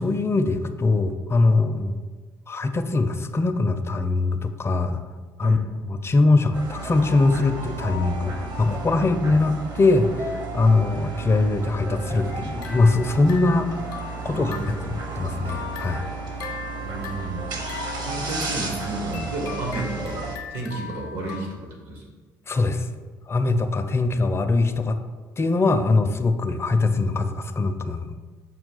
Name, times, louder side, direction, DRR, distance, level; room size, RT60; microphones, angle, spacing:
voice 1, 0.0-1.9 2.5-5.0 5.4-5.6 5.8-14.6 14.9-16.0 22.5-22.9 23.3-25.0 25.4-28.2, left 3 dB, 25° left, 8 dB, 0.4 m, -22 dB
sound 1, 6.5-20.4, right 3 dB, 50° right, 0.8 m, -33 dB
voice 2, 9.0-9.3 14.3-14.8 16.8-17.5 18.0-22.0, right 2 dB, 75° right, -1 dB, 1.2 m, -32 dB
sound 2, 12.3-14.9 15.3-21.5, left 6 dB, 85° left, 0.5 m, -40 dB
5.5 x 2.3 x 3.8 m, 1.4 s
hypercardioid pair, 55°, 9 cm